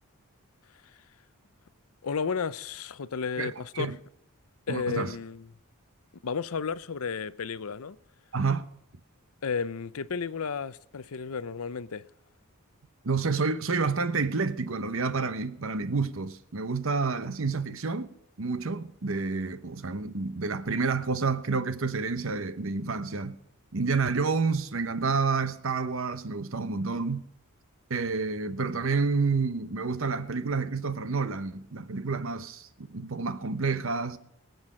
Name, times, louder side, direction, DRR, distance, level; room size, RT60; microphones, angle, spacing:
voice 1, 2.0-3.9 4.7-5.5 6.2-8.0 9.4-12.1, left 5 dB, 75° left, 0.6 m, -33 dB
voice 2, 3.4-4.0 4.7-5.1 8.3-8.7 13.0-18.1 18.4-23.4 23.7-27.3 27.9-34.2, right 4 dB, 60° right, 0.9 m, -29 dB
23.0 x 8.0 x 5.0 m
head